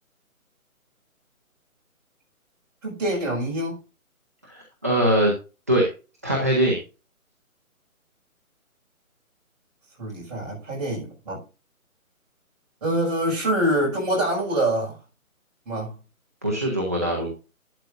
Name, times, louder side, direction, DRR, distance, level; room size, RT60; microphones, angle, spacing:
voice 1, 2.8-3.8 10.0-11.4 12.8-15.0 15.7-15.9, right 1 dB, 30° right, 5.7 m, -25 dB
voice 2, 4.4-5.3 5.7-5.9 6.2-6.8 16.4-17.3, right 1 dB, 10° right, 0.7 m, -22 dB
11.5 x 9.8 x 2.6 m
hypercardioid pair, 165°, 43 cm